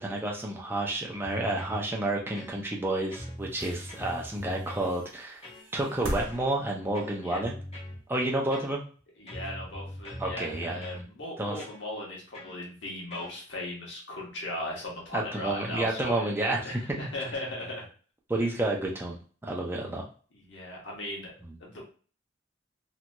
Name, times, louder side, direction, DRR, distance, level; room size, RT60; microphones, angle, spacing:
voice 1, 0.0-5.4 5.7-7.6 8.1-8.8 10.2-10.8 11.4-11.6 15.1-16.6 18.3-20.1, right 2 dB, 10° right, -1 dB, 0.5 m, -30 dB
sound 1, 1.2-1.8 2.3-2.8 3.1-4.9 5.4-5.7 6.2-6.5 6.9-8.0 8.5-9.0 9.3-11.1 11.6-11.8 12.3-12.6 13.1-13.3, left 1 dB, 30° left, 0.8 m, -42 dB
sound 2, 2.6-2.7 3.3-7.6 8.6-8.7, equal, 80° right, 0.9 m, -40 dB
voice 2, 9.2-17.9 20.3-21.3 21.6-21.8, left 1 dB, 70° left, -3 dB, 1.1 m, -38 dB
2.9 x 2.6 x 2.2 m, 0.40 s
head